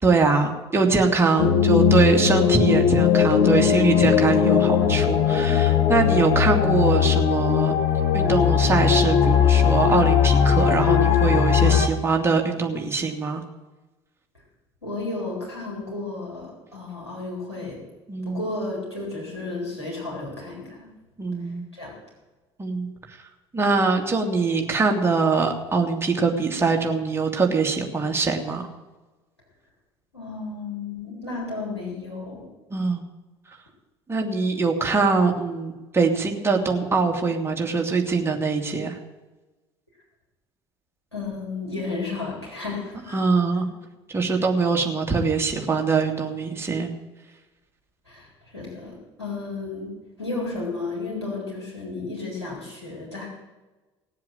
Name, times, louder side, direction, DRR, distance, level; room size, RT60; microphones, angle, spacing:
voice 1, 0.0-7.7 8.1-13.4 18.1-18.4 21.2-21.6 22.6-23.2 23.5-28.6 32.7-33.0 34.1-39.0 43.1-43.7 44.1-46.9, right 4 dB, 20° right, 1 dB, 2.7 m, -23 dB
sound 1, 1.4-11.9, left 8 dB, 60° left, 1.6 m, -19 dB
voice 2, 14.8-17.8 18.2-20.9 21.4-21.9 30.1-32.5 41.1-43.3 43.5-43.6 48.1-49.9 50.2-53.3, left 3 dB, 90° left, -4 dB, 4.1 m, -33 dB
17.5 x 7.6 x 9.3 m, 1.2 s
figure-of-eight pair, 55°, 14 cm